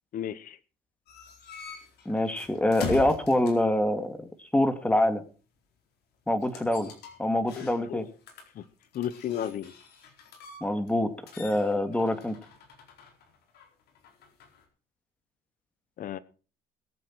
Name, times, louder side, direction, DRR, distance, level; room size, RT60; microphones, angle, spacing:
voice 1, 0.1-0.6 7.5-8.0 8.6-8.7 8.9-9.7 16.0-16.2, left 10 dB, 55° left, 16 dB, 0.9 m, -34 dB
sound 1, 1.1-3.8 6.4-8.0 8.3-11.0 11.3-14.6, left 4 dB, 70° left, 4.3 m, -42 dB
voice 2, 2.1-5.2 6.3-6.9 7.2-8.1 10.6-12.4, left 1 dB, 10° left, 9 dB, 2.0 m, -25 dB
21.5 x 7.8 x 4.6 m, 0.37 s
cardioid pair, 110°, 17 cm